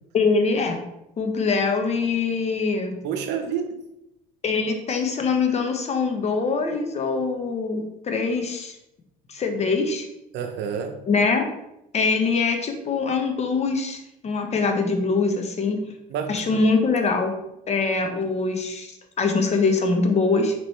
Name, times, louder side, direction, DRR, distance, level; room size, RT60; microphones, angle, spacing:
voice 1, 0.1-0.8 1.2-2.9 4.4-8.8 9.3-10.1 11.1-11.5 11.9-15.8 16.3-17.3 17.7-20.5, left 4 dB, 35° left, 5 dB, 0.8 m, -23 dB
voice 2, 3.0-3.8 10.3-10.9 16.1-16.6 17.0-17.2, right 7 dB, 65° right, 6 dB, 0.7 m, -29 dB
4.2 x 3.0 x 3.1 m, 0.85 s
supercardioid pair, 85°, 19 cm